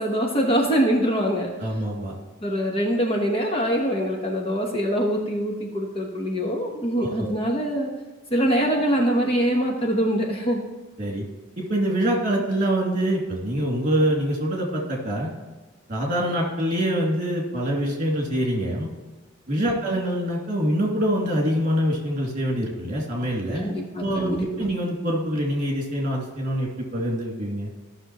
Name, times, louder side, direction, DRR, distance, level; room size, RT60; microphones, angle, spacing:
voice 1, 0.0-1.5 2.4-7.9 8.3-10.6 23.5-24.7, equal, 25° left, 0 dB, 1.1 m, -24 dB
voice 2, 1.6-2.2 6.9-7.3 11.0-11.2 11.6-15.3 15.9-18.9 19.5-23.7 24.0-27.7, equal, 40° right, -2 dB, 2.6 m, -25 dB
14.5 x 6.2 x 3.0 m, 1.3 s
head